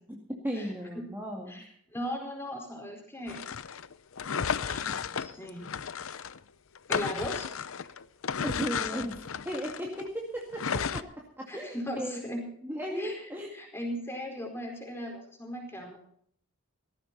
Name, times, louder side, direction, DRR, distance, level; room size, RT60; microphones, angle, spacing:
voice 1, 0.4-1.7 8.4-9.2 9.4-12.2 12.6-13.5, equal, 10° right, -1 dB, 2.1 m, -36 dB
voice 2, 1.9-3.4 4.6-5.7 6.9-7.5 11.5-12.5 12.9-16.0, equal, 10° left, 2 dB, 4.6 m, -38 dB
sound 1, 3.3-6.4 6.8-10.1 10.5-11.0, left 6 dB, 65° left, 0.6 m, -33 dB
18.0 x 14.5 x 4.1 m, 0.64 s
head